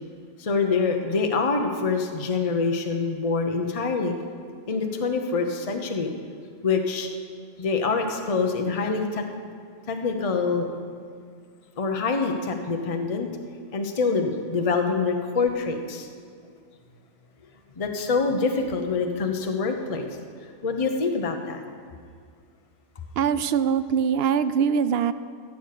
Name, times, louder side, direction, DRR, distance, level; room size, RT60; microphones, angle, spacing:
voice 1, 0.4-4.2 4.7-6.1 6.6-7.1 7.6-9.3 9.9-10.7 11.8-13.3 13.7-16.1 17.8-20.1 20.6-21.6, left 4 dB, 30° left, 4 dB, 0.8 m, -25 dB
voice 2, 23.2-25.1, right 7 dB, 65° right, 14 dB, 0.7 m, -22 dB
15.0 x 8.2 x 6.7 m, 2.1 s
omnidirectional pair, 1.3 m